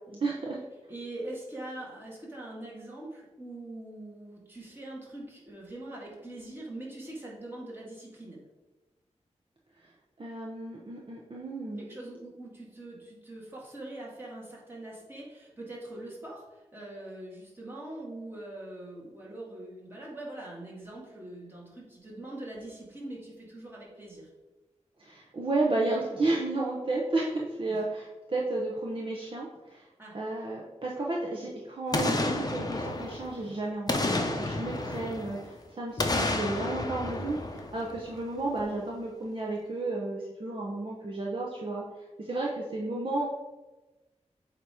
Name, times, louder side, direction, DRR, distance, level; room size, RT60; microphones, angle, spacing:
voice 1, 0.2-0.6 9.8-9.9 10.2-11.9 25.0-29.9 30.1-41.8 42.2-43.3, right 2 dB, 45° right, -4 dB, 0.9 m, -32 dB
voice 2, 0.9-8.4 11.8-24.3 27.7-27.8 30.0-30.2, right 1 dB, 20° right, -5 dB, 2.1 m, -43 dB
Boom, 31.9-33.4 33.9-35.5 36.0-38.2 38.6-38.7, left 2 dB, 35° left, 0.7 m, -31 dB
8.0 x 2.9 x 4.8 m, 1.1 s
wide cardioid pair, 100°, 12 cm